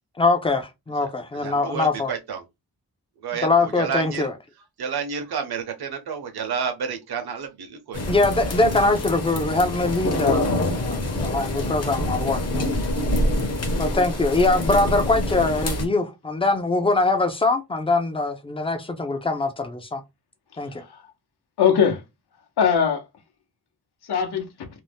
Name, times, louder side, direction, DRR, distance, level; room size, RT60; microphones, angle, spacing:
voice 1, 0.2-2.1 3.4-4.3 8.1-12.7 13.8-20.0 20.6-20.8, left 3 dB, 15° left, 0.3 m, -23 dB
voice 2, 1.3-2.4 3.2-4.3 4.8-8.0, right 6 dB, 70° right, 0.7 m, -30 dB
sound 1, 7.9-15.8, left 1 dB, 40° left, 0.7 m, -26 dB
voice 3, 13.6-14.0 20.5-21.1 21.6-22.0 22.6-23.0 24.0-24.7, left 7 dB, 80° left, 0.8 m, -22 dB
2.6 x 2.0 x 3.3 m
wide cardioid pair, 175°, 39 cm